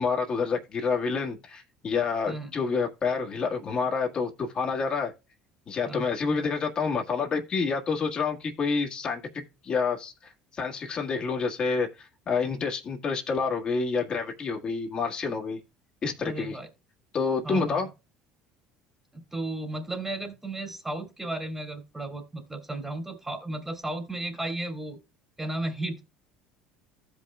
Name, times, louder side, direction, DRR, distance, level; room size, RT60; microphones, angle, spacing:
voice 1, 0.0-5.1 5.7-15.6 16.0-16.6 17.1-17.9, left 5 dB, 40° left, 1.7 m, -28 dB
voice 2, 16.2-16.7 17.4-17.8 19.1-25.0 25.4-26.0, right 2 dB, 10° right, 2.7 m, -34 dB
15.0 x 5.5 x 2.4 m
supercardioid pair, 85°, 2 cm